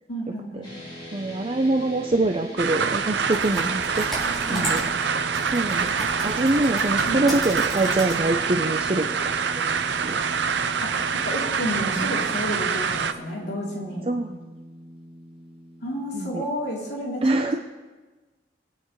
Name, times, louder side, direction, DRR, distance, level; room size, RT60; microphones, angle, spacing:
voice 1, 0.1-0.7 4.3-4.9 7.1-7.2 10.8-14.0 15.8-17.6, equal, 65° left, -4 dB, 3.0 m, -31 dB
sound 1, 0.6-17.0, equal, 30° left, 4.5 m, -41 dB
voice 2, 1.1-4.8 5.5-9.8 10.0-10.2 14.0-14.4 16.1-16.4 17.2-17.6, right 2 dB, 35° right, 4 dB, 0.6 m, -25 dB
sound 2, 2.6-13.1, right 6 dB, 75° right, 0.6 m, -25 dB
Computer keyboard, 3.2-8.4, equal, ahead, 4.7 m, -36 dB
23.5 x 9.1 x 3.2 m, 1.3 s
head